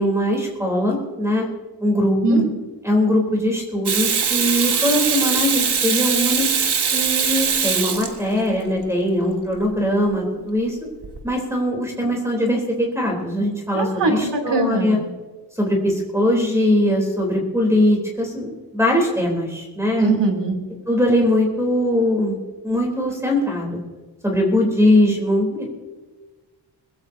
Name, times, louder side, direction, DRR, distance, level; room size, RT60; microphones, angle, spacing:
voice 1, 0.0-1.5 1.8-2.4 2.8-6.5 6.9-10.8 11.2-15.0 15.6-20.2 20.9-22.4 22.6-23.8 24.2-25.7, left 1 dB, 5° right, -1 dB, 3.6 m, -21 dB
Water tap faucet / Sink (filling or washing), 3.9-8.6 11.0-11.2, right 6 dB, 70° right, 1.7 m, -21 dB
voice 2, 13.7-14.9 20.0-20.5, right 3 dB, 90° right, 3 dB, 3.1 m, -20 dB
22.0 x 16.0 x 2.8 m, 1.3 s
wide cardioid pair, 125°, 41 cm